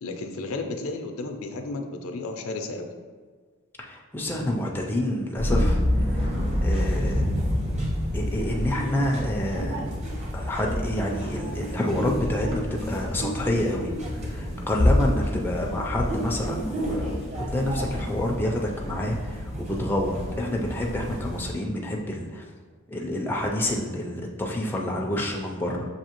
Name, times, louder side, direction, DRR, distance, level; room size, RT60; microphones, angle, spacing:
voice 1, 0.0-2.9, left 3 dB, 75° left, 5 dB, 0.5 m, -33 dB
voice 2, 3.8-6.3 6.6-7.2 8.1-9.8 10.3-22.4 22.9-25.9, left 1 dB, 10° left, -1 dB, 0.4 m, -28 dB
sound 1, 5.4-21.5, equal, 30° right, 1.0 m, -28 dB
6.4 x 2.8 x 2.9 m, 1.5 s
head